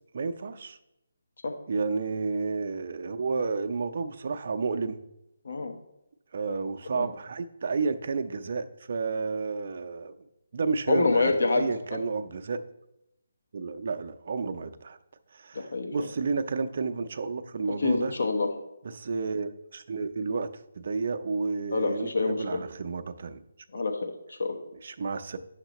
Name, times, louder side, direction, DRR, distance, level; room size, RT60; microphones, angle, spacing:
voice 1, 0.1-0.8 1.7-5.0 6.3-10.1 10.5-12.6 13.5-15.0 15.3-18.1 18.8-23.4 24.7-25.4, right 4 dB, 50° right, 7 dB, 0.6 m, -31 dB
voice 2, 10.9-11.6 11.9-12.0 15.5-15.9 17.7-18.5 21.7-22.6 23.7-24.6, left 3 dB, 65° left, 3 dB, 1.1 m, -27 dB
9.6 x 6.5 x 3.0 m, 0.87 s
figure-of-eight pair, 155°, 0 cm